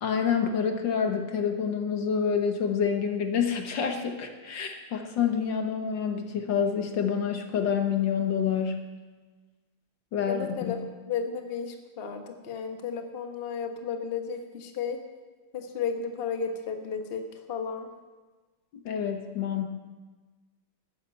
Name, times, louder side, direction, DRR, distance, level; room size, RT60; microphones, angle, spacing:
voice 1, 0.0-8.9 10.1-10.8 18.9-19.7, left 7 dB, 65° left, 5 dB, 1.7 m, -27 dB
voice 2, 10.3-10.8 11.1-15.0 15.5-17.2 17.5-17.9, left 6 dB, 35° left, 5 dB, 1.3 m, -33 dB
13.0 x 10.0 x 8.4 m, 1.3 s
omnidirectional pair, 2.3 m